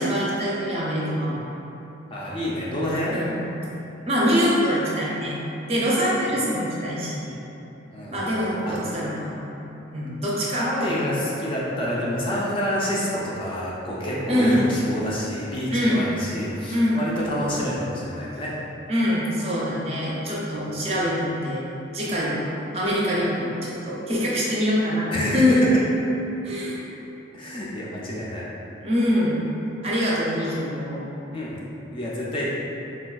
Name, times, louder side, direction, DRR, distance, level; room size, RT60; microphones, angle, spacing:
voice 1, 0.0-1.4 3.1-3.4 4.1-5.4 5.7-7.3 8.1-11.1 14.3-14.7 15.7-16.0 16.7-17.0 18.9-22.5 22.7-25.7 26.4-26.8 28.8-29.4 29.8-31.0, equal, 30° right, -6 dB, 0.5 m, -24 dB
voice 2, 2.1-3.2 6.3-6.4 7.9-8.2 8.6-8.8 10.5-18.5 25.1-25.6 27.3-28.5 31.3-31.6 31.9-32.5, equal, 25° left, -6 dB, 0.3 m, -28 dB
4.2 x 2.2 x 2.3 m, 3.0 s
head